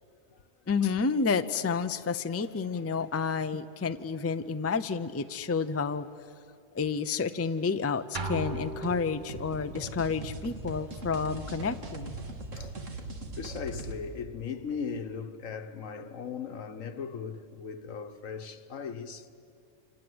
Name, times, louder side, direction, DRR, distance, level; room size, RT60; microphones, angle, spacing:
voice 1, 0.7-6.1 6.7-12.1, left 5 dB, 20° left, 0.4 m, -30 dB
sound 1, 8.1-9.6, right 2 dB, 40° right, 1.4 m, -36 dB
sound 2, 8.4-14.0, right 2 dB, 75° right, 2.3 m, -40 dB
voice 2, 13.3-19.3, left 6 dB, 85° left, 1.6 m, -38 dB
28.5 x 26.5 x 7.9 m
omnidirectional pair, 1.3 m